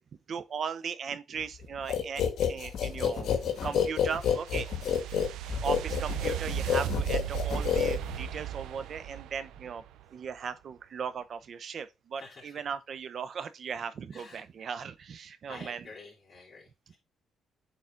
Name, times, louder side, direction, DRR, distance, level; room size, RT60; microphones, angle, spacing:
voice 1, 0.3-3.3 3.6-4.7 5.6-9.8 10.1-15.8, right 6 dB, 55° right, 0.8 m, -37 dB
sound 1, 1.9-8.4, left 8 dB, 65° left, 1.6 m, -29 dB
sound 2, 2.8-10.1, right 12 dB, 85° right, 0.5 m, -37 dB
voice 2, 12.2-12.7 14.1-14.7 15.5-17.0, left 3 dB, 40° left, 3.4 m, -50 dB
8.9 x 4.0 x 3.9 m
cardioid pair, 90°, 0 cm